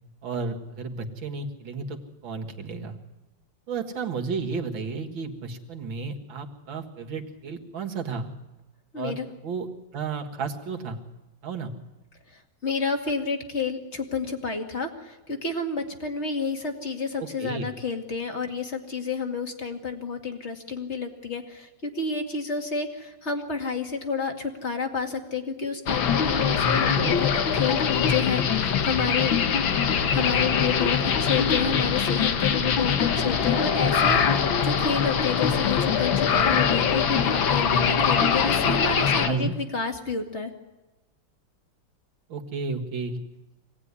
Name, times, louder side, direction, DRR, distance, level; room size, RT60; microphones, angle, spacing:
voice 1, 0.2-2.0 2.2-2.9 3.7-8.3 9.0-9.7 9.9-11.0 11.4-11.7 17.2-17.7 26.8-27.2 39.3-39.6 42.3-43.2, right 4 dB, 85° right, 3 dB, 2.7 m, -32 dB
voice 2, 8.9-9.3 12.6-29.3 30.1-40.5, left 5 dB, 35° left, 4 dB, 2.4 m, -30 dB
sound 1, 25.9-39.3, left 7 dB, 80° left, 2.1 m, -23 dB
25.5 x 18.0 x 9.8 m, 1.1 s
omnidirectional pair, 2.1 m